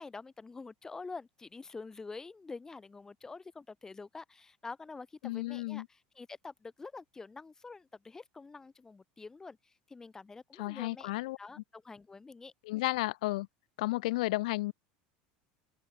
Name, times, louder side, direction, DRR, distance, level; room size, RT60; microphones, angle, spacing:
voice 1, 0.0-11.1 11.4-12.5, left 4 dB, 15° left, 6.0 m, -47 dB
voice 2, 5.2-5.9 10.6-11.4 12.6-13.5 13.8-14.7, left 20 dB, 85° left, 0.9 m, -32 dB
open air
supercardioid pair, 140°, 4 cm